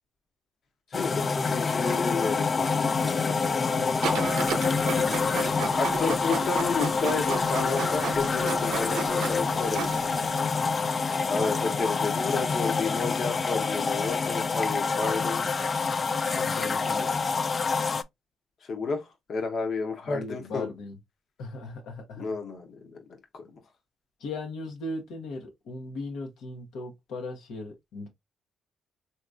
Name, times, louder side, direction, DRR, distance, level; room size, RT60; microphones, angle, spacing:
voice 1, 0.9-3.4 5.8-10.0 11.3-15.5 18.6-20.7 22.2-23.0 23.3-23.6, left 4 dB, 55° left, 0.9 m, -31 dB
sound 1, 0.9-18.0, left 4 dB, 35° left, 0.3 m, -27 dB
voice 2, 3.3-4.1 4.4-5.8 16.3-17.2 20.1-20.9 21.4-22.2 24.2-28.1, left 2 dB, 85° left, 0.9 m, -38 dB
Printer, 4.0-10.3, right 6 dB, 80° right, 0.5 m, -34 dB
3.5 x 2.8 x 2.4 m
cardioid pair, 90°, 0 cm